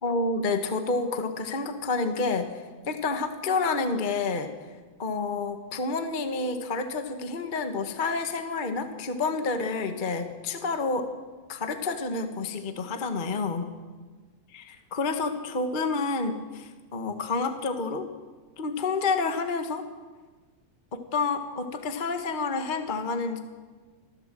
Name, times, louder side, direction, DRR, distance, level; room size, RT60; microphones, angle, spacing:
voice 1, 0.0-2.6 2.9-4.5 5.0-11.1 11.5-13.7 14.5-18.1 18.6-19.9 20.9-23.4, left 3 dB, 25° left, 6 dB, 1.0 m, -29 dB
25.5 x 16.5 x 7.7 m, 1.4 s
omnidirectional pair, 3.3 m